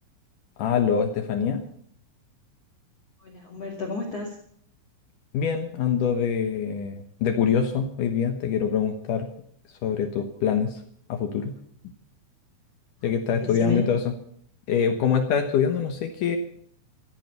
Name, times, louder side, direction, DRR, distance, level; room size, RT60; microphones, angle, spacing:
voice 1, 0.6-1.6 5.3-9.3 9.8-10.8 11.1-11.5 13.0-14.1 14.7-16.4, left 7 dB, 85° left, 6 dB, 1.8 m, -24 dB
voice 2, 3.2-4.4 13.0-13.8, left 3 dB, 40° left, 2 dB, 2.7 m, -33 dB
14.0 x 14.0 x 6.8 m, 0.63 s
omnidirectional pair, 5.6 m